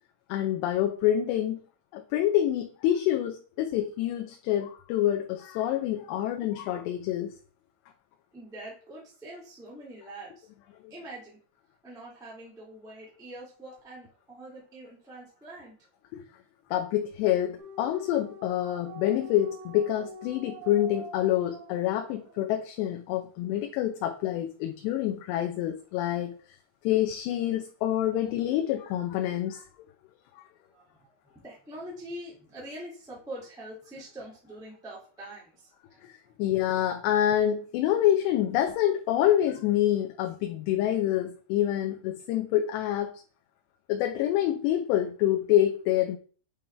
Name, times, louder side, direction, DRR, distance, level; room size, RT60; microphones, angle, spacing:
voice 1, 0.3-1.6 1.9-7.3 16.1-16.2 16.7-26.4 26.8-29.6 36.0-43.1 43.9-46.2, left 12 dB, 80° left, 3 dB, 2.7 m, -27 dB
voice 2, 8.3-10.5 10.9-11.4 11.8-15.8 16.2-16.3 30.6-36.3, right 1 dB, 5° right, -6 dB, 0.5 m, -44 dB
sound 1, 17.6-22.8, equal, 75° right, 2.7 m, -46 dB
8.5 x 3.5 x 3.3 m, 0.40 s
omnidirectional pair, 5.1 m